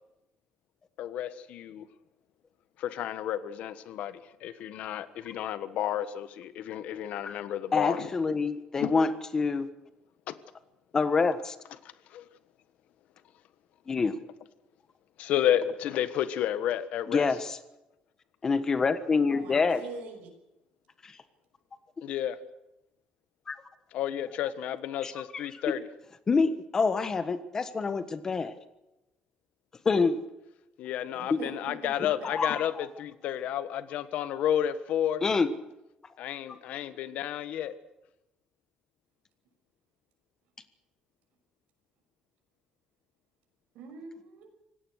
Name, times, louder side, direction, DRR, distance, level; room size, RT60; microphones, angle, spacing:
voice 1, 1.0-1.9 2.8-8.1 8.8-8.9 10.3-10.4 12.1-12.2 15.2-17.3 22.0-22.4 23.9-25.8 30.8-35.2 36.2-37.7, left 11 dB, 65° left, 13 dB, 1.4 m, -31 dB
voice 2, 7.7-9.7 10.9-11.5 13.9-14.2 17.1-17.6 18.4-19.8 21.0-21.1 23.5-23.6 25.0-25.7 26.3-28.5 29.8-30.2 31.3-31.4 32.2-32.9 35.2-35.5, left 4 dB, 25° left, 11 dB, 1.4 m, -27 dB
voice 3, 19.3-20.3 24.1-24.2 31.1-31.9 43.7-44.5, right 4 dB, 90° right, 4 dB, 6.2 m, -44 dB
25.5 x 18.0 x 6.5 m, 0.91 s
cardioid pair, 170°, 2 cm